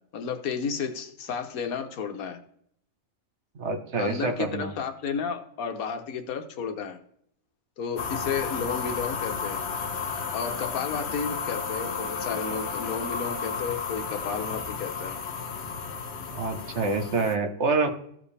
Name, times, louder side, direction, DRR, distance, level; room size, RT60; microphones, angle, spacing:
voice 1, 0.1-2.4 4.0-7.0 7.8-9.6 10.3-15.2, left 6 dB, 85° left, 7 dB, 1.5 m, -32 dB
voice 2, 3.5-4.7 16.3-17.9, right 3 dB, 55° right, 5 dB, 1.4 m, -27 dB
sound 1, 8.0-17.3, left 5 dB, 55° left, 1.1 m, -33 dB
14.5 x 5.2 x 3.3 m, 0.68 s
omnidirectional pair, 1.5 m